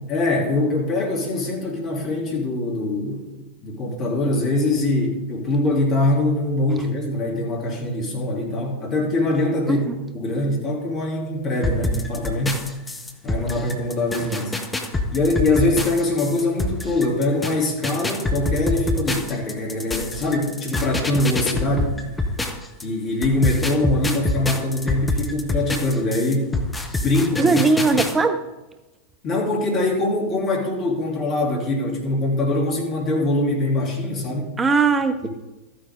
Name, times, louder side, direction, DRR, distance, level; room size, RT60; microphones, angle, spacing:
voice 1, 0.1-12.6 13.2-14.5 15.1-22.0 22.8-26.6 27.0-27.6 27.9-28.0 29.2-34.5 35.2-35.3, left 2 dB, 35° left, -1 dB, 3.1 m, -23 dB
sound 1, 11.6-22.8 23.2-28.1, left 2 dB, 10° left, 1.1 m, -26 dB
voice 2, 27.4-28.4 34.6-35.3, right 4 dB, 15° right, 10 dB, 0.6 m, -19 dB
13.5 x 10.0 x 3.7 m, 1.1 s
figure-of-eight pair, 90°, 0 cm